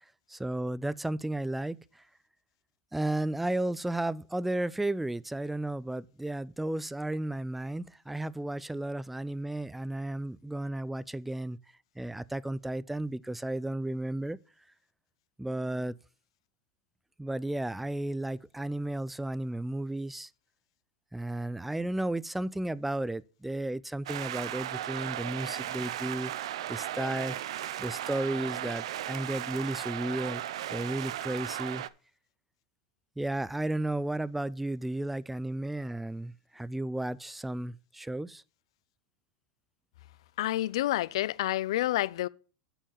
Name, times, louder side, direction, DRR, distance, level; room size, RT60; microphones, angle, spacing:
voice 1, 0.3-2.0 2.9-11.6 12.0-14.4 15.4-16.0 17.2-20.3 21.1-27.4 27.8-30.4 30.7-31.8 33.2-38.4, right 1 dB, 5° right, 0.4 m, -33 dB
sound 1, 24.1-31.9, right 12 dB, 80° right, 0.5 m, -36 dB
voice 2, 40.4-42.3, left 15 dB, 75° left, 0.4 m, -28 dB
8.9 x 4.6 x 7.0 m
supercardioid pair, 125°, 3 cm